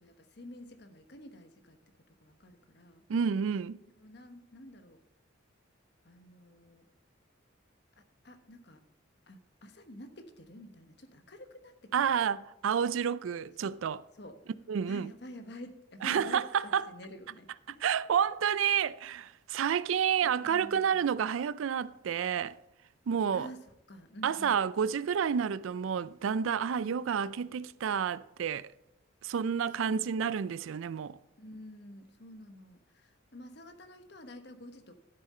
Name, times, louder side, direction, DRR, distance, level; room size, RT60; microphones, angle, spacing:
voice 1, 0.0-1.8 2.1-3.0 4.0-5.0 6.0-6.8 8.0-8.8 9.3-12.2 13.3-13.7 14.2-14.4 14.9-17.8 20.2-21.0 23.3-24.6 29.8-30.1 31.4-35.0, left 1 dB, 55° left, 1.1 m, -49 dB
voice 2, 3.1-3.8 11.9-14.0 14.7-15.1 16.0-16.8 17.8-22.6 23.1-23.5 24.2-28.7 29.2-31.2, right 7 dB, 80° right, 0.4 m, -30 dB
12.0 x 7.4 x 4.2 m
head